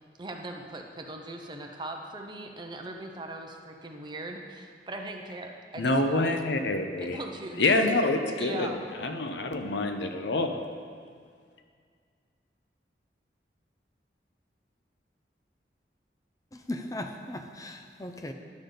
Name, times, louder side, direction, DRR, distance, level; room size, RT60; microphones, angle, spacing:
voice 1, 0.2-6.4 7.0-7.7 8.4-8.8, right 2 dB, 25° right, 3 dB, 0.7 m, -39 dB
voice 2, 5.8-7.2 7.6-8.7 9.0-10.6, left 2 dB, 80° left, 6 dB, 0.7 m, -26 dB
voice 3, 16.5-18.3, left 1 dB, 20° left, 5 dB, 0.5 m, -37 dB
10.5 x 6.7 x 3.9 m, 2.1 s
head